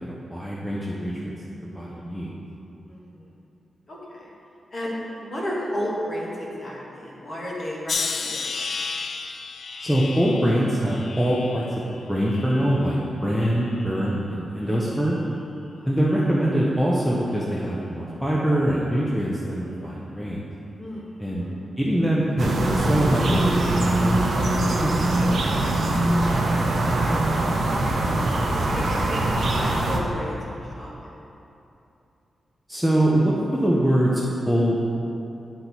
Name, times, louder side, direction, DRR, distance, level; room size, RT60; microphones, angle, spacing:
voice 1, 0.0-1.3 1.7-2.3 9.8-11.6 12.1-15.2 15.9-20.4 21.2-21.5 21.8-24.5 24.8-25.6 32.7-34.8, equal, ahead, -6 dB, 0.6 m, -23 dB
voice 2, 1.6-2.1 2.9-3.3 3.9-4.3 4.7-4.9 5.2-8.4 15.7-15.9 20.8-21.6 26.4-30.9, equal, 30° left, -5 dB, 1.3 m, -34 dB
sound 1, 7.9-13.0 13.5-14.2 14.9-15.2, left 4 dB, 50° left, 0.3 m, -33 dB
sound 2, 22.4-30.0, right 2 dB, 55° right, 0.7 m, -22 dB
9.8 x 4.4 x 4.0 m, 2.8 s
wide cardioid pair, 175°, 0 cm